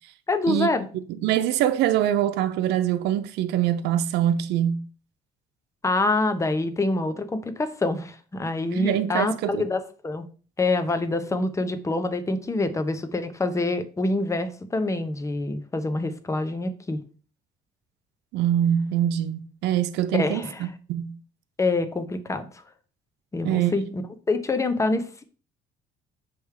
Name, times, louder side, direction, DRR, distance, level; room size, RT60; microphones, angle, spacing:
voice 1, 0.3-0.9 5.8-10.3 10.6-17.0 20.1-20.7 21.6-22.5 23.3-25.1, left 2 dB, 15° left, 0.8 m, -26 dB
voice 2, 1.2-4.9 8.7-9.6 18.3-21.2 23.4-23.8, right 11 dB, 85° right, 0.6 m, -24 dB
6.1 x 3.5 x 4.8 m
cardioid pair, 110°, 17 cm